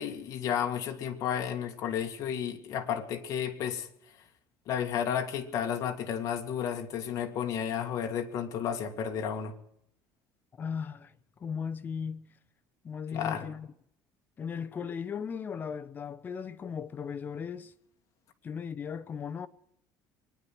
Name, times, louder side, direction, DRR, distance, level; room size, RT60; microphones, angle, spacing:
voice 1, 0.0-3.9 4.7-9.6 13.1-13.5, left 8 dB, 45° left, 2.0 m, -32 dB
voice 2, 10.6-11.1 11.4-12.3 12.8-13.7 14.4-17.7 18.4-19.5, left 6 dB, 25° left, 0.8 m, -37 dB
23.5 x 10.0 x 6.2 m
cardioid pair, 165°, 7 cm